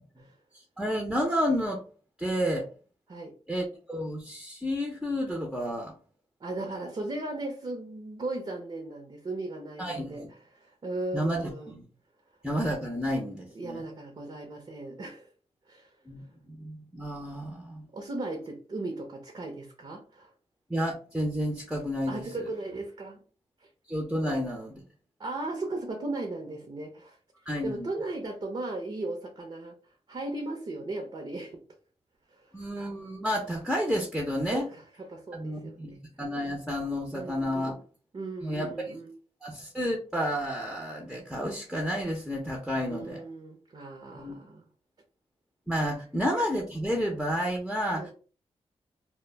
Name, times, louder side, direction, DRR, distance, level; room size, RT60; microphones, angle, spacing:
voice 1, 0.8-1.8 2.2-2.7 3.5-5.9 9.8-10.3 11.1-11.8 12.4-13.8 16.1-16.2 16.5-17.9 20.7-22.3 23.9-24.8 27.5-27.9 32.5-34.7 35.3-37.8 38.4-38.9 39.4-43.2 44.1-44.4 45.7-48.1, equal, 5° right, 0.6 m, -31 dB
voice 2, 6.4-10.2 10.5-11.7 13.5-15.3 15.7-15.9 17.9-20.3 22.1-23.2 24.2-24.4 25.2-27.2 27.6-29.7 30.1-31.6 32.3-32.5 34.5-36.0 37.1-37.7 38.1-39.1 42.9-44.7 47.9-48.1, right 2 dB, 50° right, 0.6 m, -37 dB
2.1 x 2.1 x 3.2 m
cardioid pair, 65°, 11 cm